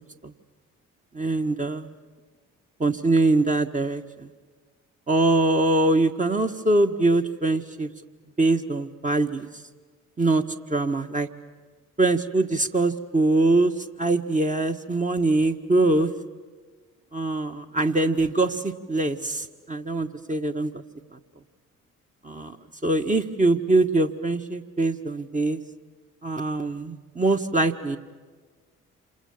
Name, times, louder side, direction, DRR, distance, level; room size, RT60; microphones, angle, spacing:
voice 1, 1.1-2.0 2.8-4.3 5.1-7.9 8.4-9.5 10.2-10.4 10.7-11.3 12.0-13.7 14.0-16.1 17.1-20.8 22.2-22.6 22.8-25.6 26.2-28.0, right 2 dB, 20° right, 5 dB, 1.6 m, -23 dB
28.5 x 27.0 x 7.3 m, 1.4 s
figure-of-eight pair, 45°, 39 cm